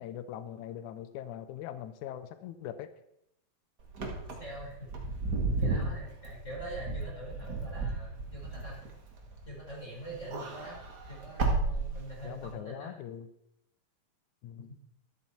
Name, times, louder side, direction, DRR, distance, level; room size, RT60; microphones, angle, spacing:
voice 1, 0.0-2.9 12.2-13.3 14.4-14.7, left 10 dB, 80° left, 12 dB, 1.7 m, -41 dB
Wind / Car, 3.9-9.7 10.0-12.5, right 3 dB, 35° right, 1.8 m, -33 dB
voice 2, 4.4-5.0 5.6-8.9 9.4-12.9 14.6-14.7, right 1 dB, 20° left, -4 dB, 4.6 m, -44 dB
13.5 x 12.5 x 4.3 m, 0.80 s
omnidirectional pair, 4.2 m